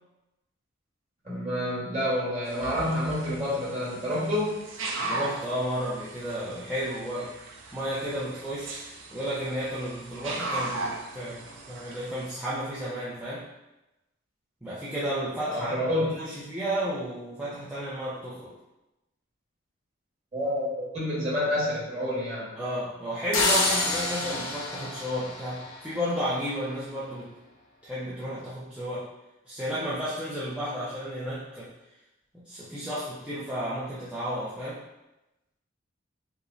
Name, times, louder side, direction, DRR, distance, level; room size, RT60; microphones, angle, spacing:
voice 1, 1.2-4.6 15.4-16.1 20.3-22.5, left 1 dB, 30° right, -9 dB, 1.5 m, -28 dB
sound 1, 2.5-12.3, right 2 dB, 65° right, 0.5 m, -38 dB
voice 2, 5.0-7.4 7.7-13.4 14.6-18.5 22.6-27.3 27.8-29.1 29.5-31.7 32.3-34.8, equal, 5° right, -10 dB, 0.4 m, -32 dB
sound 2, 23.3-26.2, left 2 dB, 75° left, 0.6 m, -28 dB
4.6 x 2.1 x 2.6 m, 0.97 s
head